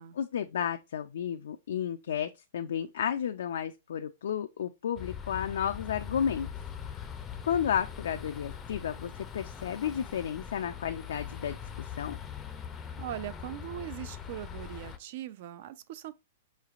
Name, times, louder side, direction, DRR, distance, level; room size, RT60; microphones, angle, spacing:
voice 1, 0.2-6.5 7.0-7.1 7.5-12.2, left 8 dB, 75° left, 0.3 m, -32 dB
sound 1, 5.0-15.0, left 8 dB, 15° left, 0.5 m, -42 dB
voice 2, 13.0-16.1, right 12 dB, 50° right, 0.4 m, -40 dB
4.9 x 3.2 x 2.4 m
hypercardioid pair, 150°, 0 cm